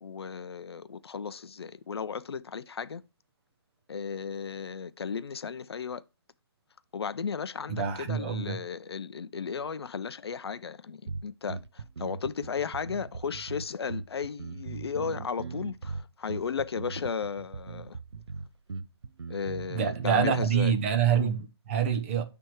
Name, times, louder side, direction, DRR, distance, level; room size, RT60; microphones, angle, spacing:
voice 1, 0.0-3.0 3.9-6.0 6.9-18.0 19.3-20.7, left 6 dB, 70° left, 0.5 m, -35 dB
voice 2, 7.7-8.6 19.7-22.2, right 8 dB, 30° right, 0.8 m, -26 dB
sound 1, 11.1-20.7, right 4 dB, 80° right, 0.5 m, -39 dB
7.7 x 3.4 x 4.6 m
figure-of-eight pair, 150°, 14 cm